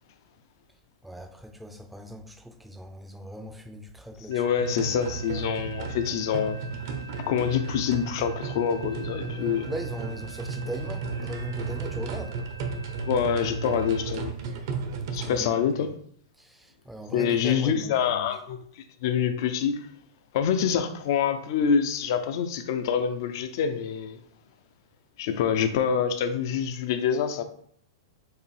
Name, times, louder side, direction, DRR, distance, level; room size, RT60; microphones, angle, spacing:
voice 1, 1.0-4.4 9.3-12.4 15.2-15.8 16.4-18.3, equal, 5° right, 0.4 m, -39 dB
voice 2, 4.3-6.6 7.2-9.6 13.1-14.3 15.1-15.9 17.1-19.9 20.3-24.2 25.2-27.4, left 7 dB, 60° left, 0.4 m, -26 dB
sound 1, 4.3-14.0, right 4 dB, 85° right, 1.0 m, -46 dB
sound 2, 4.6-15.4, right 4 dB, 65° right, 0.7 m, -34 dB
4.6 x 2.6 x 3.3 m
hypercardioid pair, 125°, 2 cm